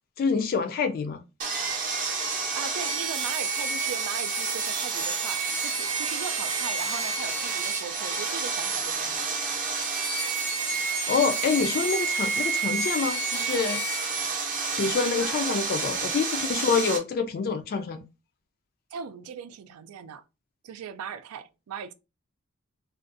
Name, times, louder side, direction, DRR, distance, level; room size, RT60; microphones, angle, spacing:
voice 1, 0.2-1.2 11.1-13.8 14.8-18.0, left 5 dB, 45° left, 0.3 m, -26 dB
Sawing, 1.4-17.0, right 4 dB, 35° right, 0.6 m, -29 dB
voice 2, 2.5-9.3 15.3-15.5 18.9-20.2 20.6-21.9, right 7 dB, 75° right, 0.3 m, -39 dB
2.5 x 2.3 x 2.4 m
head